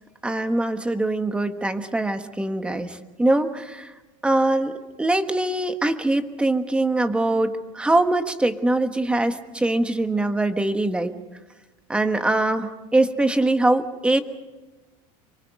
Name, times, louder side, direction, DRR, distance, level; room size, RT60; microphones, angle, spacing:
voice 1, 0.2-3.9 4.2-11.1 11.9-14.2, right 2 dB, 5° right, 8 dB, 1.3 m, -23 dB
27.0 x 24.0 x 5.3 m, 1.1 s
cardioid pair, 150°, 16 cm